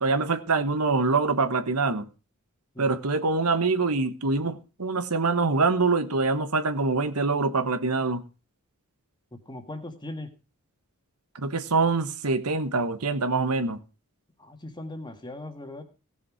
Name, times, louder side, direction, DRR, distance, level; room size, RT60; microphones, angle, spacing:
voice 1, 0.0-2.1 2.8-8.2 11.3-13.8, right 3 dB, 80° right, 1.3 m, -25 dB
voice 2, 9.5-10.3 14.4-15.8, left 1 dB, 20° left, 1.8 m, -38 dB
16.5 x 7.2 x 4.9 m
head